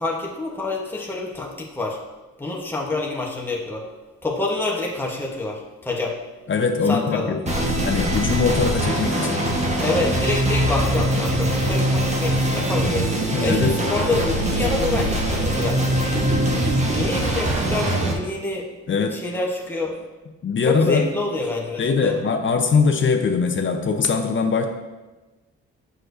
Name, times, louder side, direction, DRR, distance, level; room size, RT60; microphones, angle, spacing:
voice 1, 0.0-2.0 2.4-3.8 4.2-6.2 6.9-7.3 9.8-16.0 16.9-18.7 19.1-20.1 20.6-22.2, left 2 dB, 5° left, -2 dB, 1.1 m, -27 dB
voice 2, 6.5-7.5 7.8-9.4 13.3-13.7 18.9-19.2 20.4-21.1 21.8-24.7, left 5 dB, 40° left, 5 dB, 0.7 m, -21 dB
sound 1, 7.5-18.1, right 1 dB, 25° right, 1.2 m, -22 dB
7.5 x 6.4 x 2.6 m, 1.1 s
cardioid pair, 90°, 30 cm